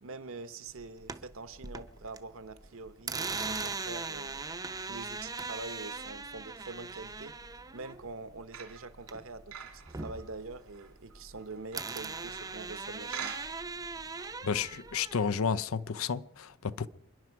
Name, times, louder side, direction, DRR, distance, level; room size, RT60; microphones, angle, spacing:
voice 1, 0.0-4.5 4.9-13.4, right 3 dB, 65° right, 1.0 m, -45 dB
sound 1, 0.8-2.2 2.5-9.4 9.7-11.4 11.7-15.3, right 4 dB, 15° right, 0.6 m, -39 dB
sound 2, 8.5-12.7 13.1-13.8 14.2-14.3, right 8 dB, 85° right, 2.7 m, -45 dB
voice 2, 14.4-16.9, left 6 dB, 70° left, 0.6 m, -31 dB
28.0 x 10.5 x 4.7 m
head